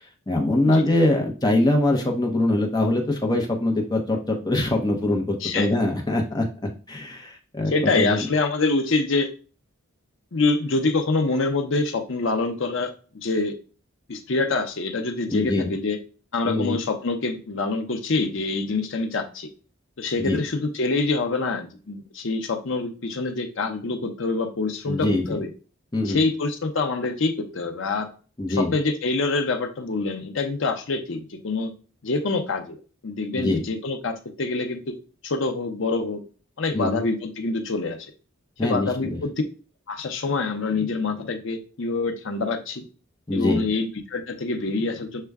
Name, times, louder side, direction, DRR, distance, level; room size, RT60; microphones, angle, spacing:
voice 1, 0.3-6.5 6.9-8.3 15.3-15.7 16.4-16.8 20.2-20.4 24.9-25.4 25.9-26.2 28.4-28.8 33.3-33.6 36.7-37.0 38.6-39.2 43.3-43.6, left 1 dB, 20° left, 1 dB, 0.7 m, -23 dB
voice 2, 7.7-9.3 10.3-12.9 13.2-13.5 14.1-16.0 16.3-19.5 20.0-25.5 26.1-28.1 28.5-31.7 32.0-32.8 33.0-35.0 35.2-36.2 36.6-38.1 38.6-39.3 39.9-42.8 43.3-45.2, left 3 dB, 65° left, 6 dB, 0.7 m, -25 dB
6.5 x 2.2 x 3.5 m, 0.37 s
head